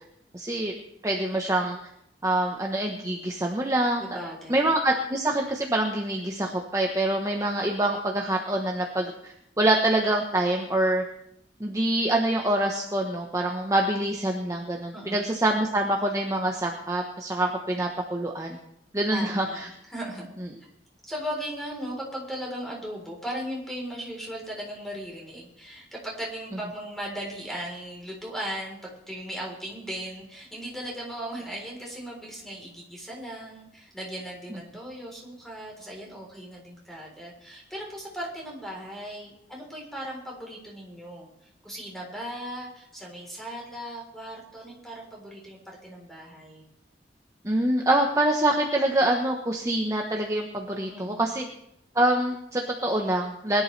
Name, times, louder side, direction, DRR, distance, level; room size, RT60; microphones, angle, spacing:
voice 1, 0.3-0.7 1.0-1.8 2.2-4.0 4.5-11.0 11.6-18.6 18.9-19.7 47.4-51.4 51.9-53.6, right 1 dB, 20° right, 1 dB, 1.1 m, -25 dB
voice 2, 4.0-4.7 14.9-15.3 19.1-19.6 19.9-20.4 21.0-41.3 41.6-46.6 50.9-51.5, equal, ahead, -2 dB, 3.8 m, -37 dB
21.5 x 11.0 x 3.3 m, 0.79 s
head